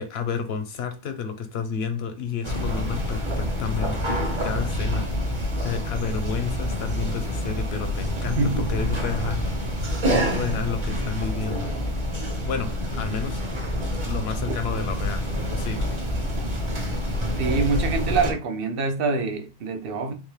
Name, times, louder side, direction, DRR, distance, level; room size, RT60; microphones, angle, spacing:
voice 1, 0.0-9.4 9.8-11.7 12.5-13.4 14.1-15.2 15.5-16.1, left 6 dB, 80° left, 0.9 m, -31 dB
sound 1, 2.4-18.3, equal, 30° right, 0.8 m, -27 dB
voice 2, 8.4-8.8 14.5-14.6 17.4-20.1, right 4 dB, 65° right, 0.7 m, -25 dB
3.6 x 2.8 x 3.2 m
omnidirectional pair, 1.1 m